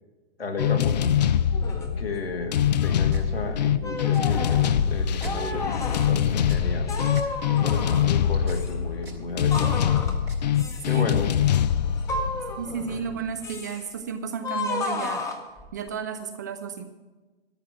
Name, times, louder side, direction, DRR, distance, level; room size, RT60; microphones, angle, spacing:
voice 1, 0.4-1.2 2.0-6.9 7.5-9.8 10.8-11.3 12.9-13.0, left 3 dB, 75° left, 2 dB, 2.0 m, -33 dB
sound 1, 0.6-13.3, left 9 dB, 45° left, 0.5 m, -24 dB
sound 2, 0.6-1.0 1.5-1.9 2.6-3.2 3.8-4.7 5.2-6.1 6.9-8.2 8.5-8.7 9.5-10.2 10.6-11.0 12.0-13.1 13.4-13.9 14.4-15.9, left 3 dB, 10° left, 0.9 m, -33 dB
sound 3, 3.0-11.1, right 1 dB, 90° right, 3.5 m, -42 dB
voice 2, 12.6-15.2 15.7-16.8, right 6 dB, 20° right, 7 dB, 0.3 m, -33 dB
13.0 x 6.0 x 9.4 m, 1.2 s
figure-of-eight pair, 120°, 31 cm